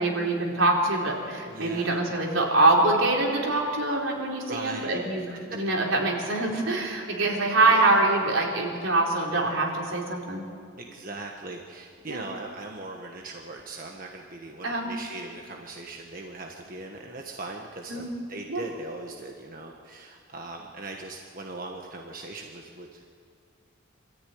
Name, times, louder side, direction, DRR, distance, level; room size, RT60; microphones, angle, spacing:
voice 1, 0.0-10.4 12.1-12.2 14.6-14.9 17.9-18.1 18.5-18.6, right 2 dB, 75° right, -1 dB, 4.0 m, -24 dB
voice 2, 1.5-2.0 4.5-5.0 7.7-8.0 10.8-23.1, right 2 dB, 45° right, 1 dB, 1.4 m, -40 dB
24.5 x 14.0 x 9.4 m, 2.2 s
head